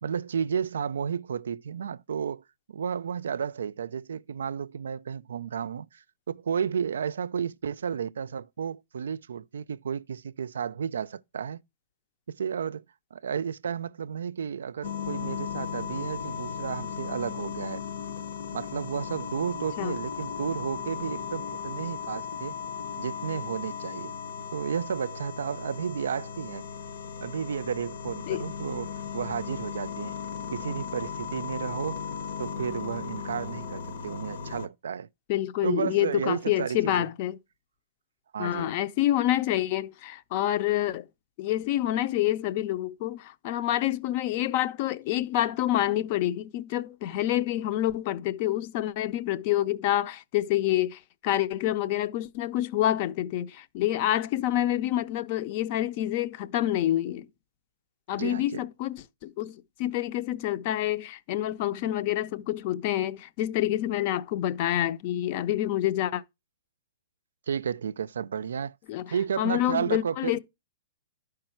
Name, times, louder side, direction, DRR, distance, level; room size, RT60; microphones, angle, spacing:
voice 1, 0.0-2.4 2.7-11.6 12.3-12.8 13.1-17.8 18.5-22.6 23.0-24.1 24.5-26.6 27.2-30.2 30.5-32.0 32.4-35.1 35.6-37.1 38.3-38.8 58.1-58.6 67.5-68.8 69.1-70.4, right 7 dB, 85° right, 0.4 m, -32 dB
sound 1, 14.8-34.7, left 7 dB, 60° left, 0.9 m, -36 dB
voice 2, 35.3-37.4 38.4-41.1 41.4-57.3 58.1-66.2 68.9-69.1 69.4-70.4, left 13 dB, 35° left, 0.5 m, -27 dB
11.5 x 4.8 x 4.4 m
hypercardioid pair, 165°, 0 cm